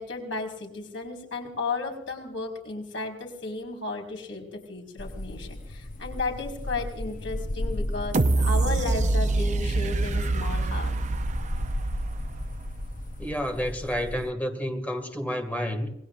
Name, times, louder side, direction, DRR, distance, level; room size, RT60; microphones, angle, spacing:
voice 1, 0.0-10.9, left 3 dB, 85° left, 5.1 m, -34 dB
sound 1, 5.0-14.3, left 1 dB, 45° left, 0.8 m, -35 dB
sound 2, 8.1-13.0 13.5-13.6, right 2 dB, 40° right, 0.6 m, -26 dB
voice 2, 13.2-15.9, equal, 10° left, 2.2 m, -30 dB
27.5 x 20.0 x 2.6 m
head